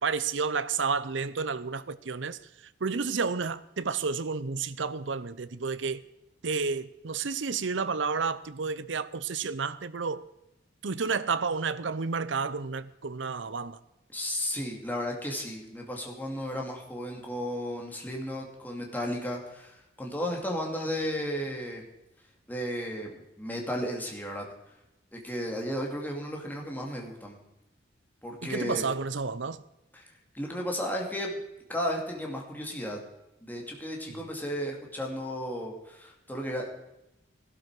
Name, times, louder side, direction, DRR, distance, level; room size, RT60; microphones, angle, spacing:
voice 1, 0.0-2.4 2.8-6.0 6.4-10.2 10.8-13.8 28.4-29.6 34.1-34.2, right 5 dB, 70° right, 0.7 m, -31 dB
voice 2, 14.1-21.8 22.5-24.5 25.1-27.4 28.2-28.8 29.9-30.0 30.3-31.4 31.7-33.0 33.4-36.7, equal, 10° left, 2.6 m, -34 dB
16.5 x 12.5 x 4.9 m
head